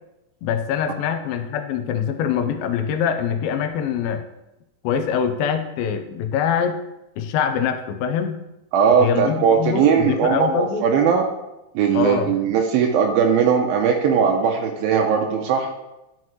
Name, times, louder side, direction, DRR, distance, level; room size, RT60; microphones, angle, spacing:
voice 1, 0.4-4.2 4.8-6.8 7.2-8.4 9.0-10.9 11.9-12.3, left 8 dB, 80° left, 8 dB, 2.4 m, -24 dB
voice 2, 8.7-11.3 11.8-15.7, right 6 dB, 85° right, 2 dB, 2.4 m, -19 dB
11.0 x 5.8 x 3.1 m, 0.94 s
omnidirectional pair, 4.3 m